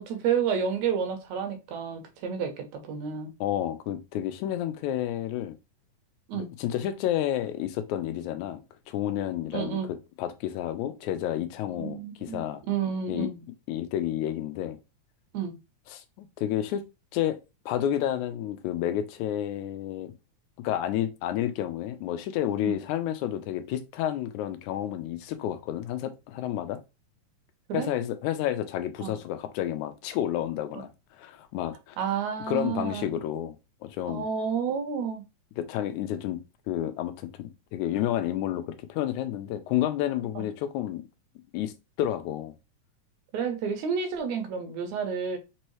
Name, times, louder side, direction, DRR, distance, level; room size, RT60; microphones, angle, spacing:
voice 1, 0.0-3.3 6.3-6.5 9.5-9.9 11.8-13.5 15.3-15.6 22.6-22.8 27.7-27.9 29.0-29.1 32.0-33.2 34.1-35.2 40.4-40.5 43.3-45.4, right 7 dB, 75° right, 2.1 m, -30 dB
voice 2, 3.4-5.5 6.3-8.6 8.9-9.8 10.2-12.6 13.1-13.3 13.7-14.8 15.9-16.8 17.1-17.4 17.7-20.1 20.6-26.8 27.7-30.9 31.2-32.0 32.5-33.6 33.8-34.3 35.6-36.4 36.7-41.0 41.5-41.7 42.0-42.5, left 11 dB, 85° left, 2.0 m, -30 dB
5.4 x 3.0 x 3.0 m
omnidirectional pair, 3.4 m